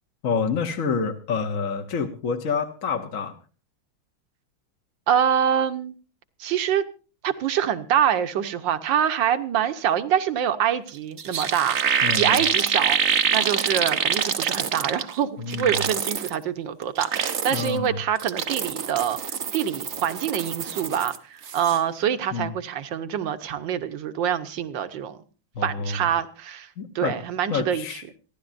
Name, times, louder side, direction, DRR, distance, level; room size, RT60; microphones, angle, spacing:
voice 1, 0.2-3.3 12.0-12.4 15.4-15.7 17.5-18.0 22.3-22.5 25.5-26.0 26.8-27.1 27.5-28.0, left 5 dB, 50° left, 1.2 m, -28 dB
voice 2, 5.1-5.9 6.4-6.8 7.2-19.2 19.5-25.2 25.6-26.7 26.9-28.0, right 9 dB, 65° right, 1.6 m, -25 dB
sound 1, 10.9-11.0 11.2-15.2 15.5-16.3 16.8-17.8 18.2-21.2 21.4-21.8, right 7 dB, 50° right, 0.9 m, -25 dB
27.0 x 11.5 x 2.6 m
omnidirectional pair, 2.3 m